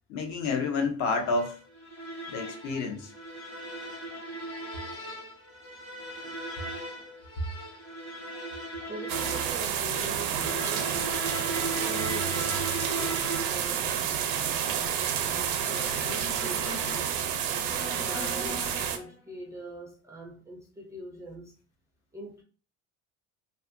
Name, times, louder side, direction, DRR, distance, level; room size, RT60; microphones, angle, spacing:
voice 1, 0.1-1.6 2.3-3.1, left 4 dB, 55° left, 0.7 m, -29 dB
sound 1, 1.2-19.2, right 1 dB, 40° left, 1.1 m, -39 dB
voice 2, 8.9-10.9 11.6-14.7 15.3-17.3 18.0-21.5 22.1-22.4, right 1 dB, 10° right, 0.3 m, -43 dB
sound 2, 9.1-19.0, right 9 dB, 85° right, 0.5 m, -29 dB
2.5 x 2.4 x 2.5 m
cardioid pair, 135°, 33 cm